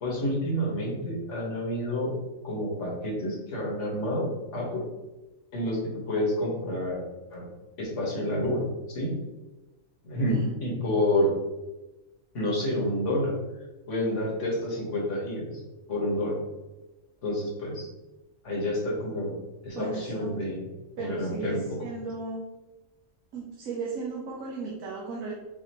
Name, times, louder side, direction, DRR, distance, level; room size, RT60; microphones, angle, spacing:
voice 1, 0.0-2.1 2.4-4.8 5.5-7.0 7.3-7.4 7.8-9.1 10.0-11.3 12.3-13.3 13.9-15.6 15.9-16.4 17.2-17.9 18.4-19.4 19.6-20.7 21.0-21.8, left 1 dB, 60° left, -3 dB, 1.7 m, -29 dB
voice 2, 19.7-20.4 21.0-22.4 23.3-25.3, right 3 dB, 85° right, -3 dB, 1.1 m, -35 dB
6.1 x 2.7 x 2.9 m, 1.1 s
omnidirectional pair, 1.4 m